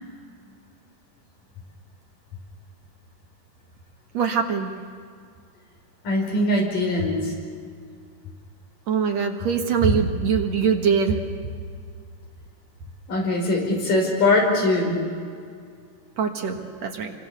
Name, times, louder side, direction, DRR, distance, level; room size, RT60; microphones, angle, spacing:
voice 1, 4.1-4.7 8.9-11.2 16.2-17.1, right 6 dB, 60° right, 3 dB, 2.6 m, -22 dB
voice 2, 6.0-7.3 13.1-15.0, left 2 dB, 80° left, 0 dB, 6.7 m, -21 dB
29.0 x 24.0 x 6.9 m, 2.2 s
omnidirectional pair, 3.8 m